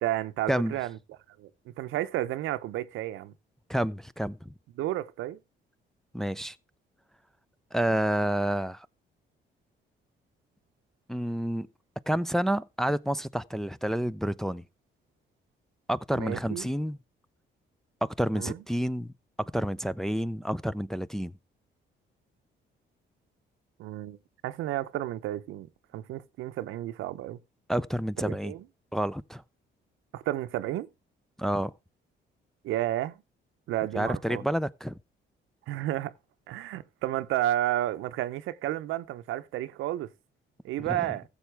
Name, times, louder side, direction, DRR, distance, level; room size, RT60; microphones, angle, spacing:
voice 1, 0.0-1.0 1.4-1.5 1.8-3.3 4.8-5.4 16.1-16.7 18.3-18.6 23.8-24.2 24.4-25.7 25.9-27.4 28.2-28.6 30.1-30.9 32.6-33.2 33.7-34.4 35.7-36.1 36.5-40.1 40.6-41.2, right 14 dB, 90° right, 0.7 m, -31 dB
voice 2, 3.7-4.5 6.1-6.6 7.7-8.9 11.1-11.7 12.1-14.6 15.9-17.0 18.0-19.1 19.4-21.3 27.7-28.5 28.9-29.4 31.4-31.7 33.9-35.0 40.9-41.1, equal, ahead, 0.4 m, -29 dB
15.0 x 7.1 x 3.4 m
cardioid pair, 90°, 20 cm